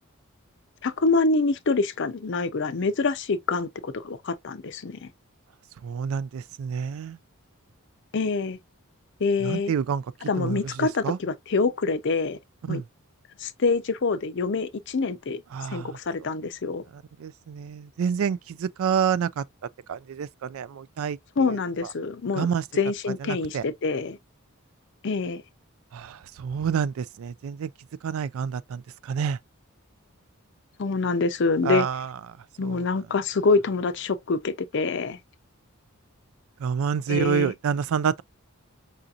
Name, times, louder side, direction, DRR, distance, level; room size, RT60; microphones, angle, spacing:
voice 1, 0.8-5.1 8.1-8.6 9.2-9.7 10.2-12.4 12.7-12.8 13.4-15.4 15.7-16.8 21.4-22.5 22.8-24.2 25.0-25.4 30.8-31.9 32.6-35.2 37.1-37.5, left 4 dB, 55° left, 0.5 m, -26 dB
voice 2, 5.8-7.2 9.4-11.2 12.6-12.8 15.5-16.0 17.2-19.4 19.9-21.6 22.4-22.6 23.2-23.6 25.9-27.7 28.0-29.4 31.6-32.1 32.6-32.9 36.6-38.2, right 7 dB, 70° right, 0.3 m, -28 dB
4.9 x 2.7 x 2.4 m
head